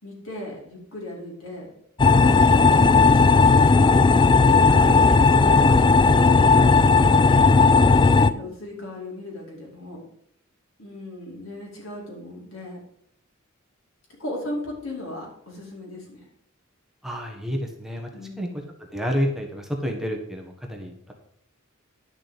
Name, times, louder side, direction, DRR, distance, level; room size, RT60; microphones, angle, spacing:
voice 1, 0.0-1.7 2.1-4.0 4.6-6.7 7.4-10.0 10.8-12.8 14.2-16.2 18.1-18.7, left 1 dB, 75° left, -3 dB, 5.0 m, -37 dB
sound 1, 2.0-8.3, left 4 dB, 20° left, 0.3 m, -15 dB
voice 2, 4.8-5.2 17.0-18.1 18.4-18.5 18.9-21.1, equal, ahead, 1 dB, 1.4 m, -29 dB
11.5 x 6.9 x 5.2 m, 0.72 s
head